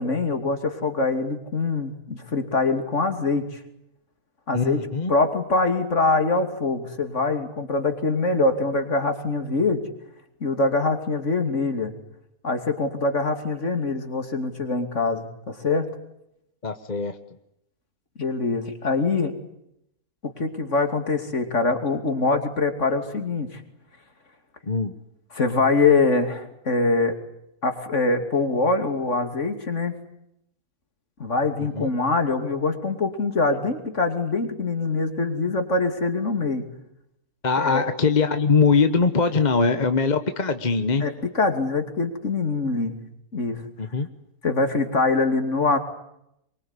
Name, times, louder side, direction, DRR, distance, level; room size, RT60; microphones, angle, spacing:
voice 1, 0.0-3.6 4.5-4.8 5.1-9.8 10.4-11.9 12.4-15.9 18.2-19.3 20.4-23.6 25.3-27.2 27.6-29.9 31.2-36.6 37.6-37.8 41.0-42.9 43.3-43.6 44.4-45.8, left 3 dB, 50° left, 7 dB, 3.1 m, -24 dB
voice 2, 4.5-5.1 16.6-17.1 24.7-24.9 31.6-31.9 37.4-41.1 43.8-44.1, left 4 dB, 30° left, 8 dB, 1.2 m, -22 dB
24.0 x 23.5 x 9.8 m, 0.80 s
omnidirectional pair, 1.6 m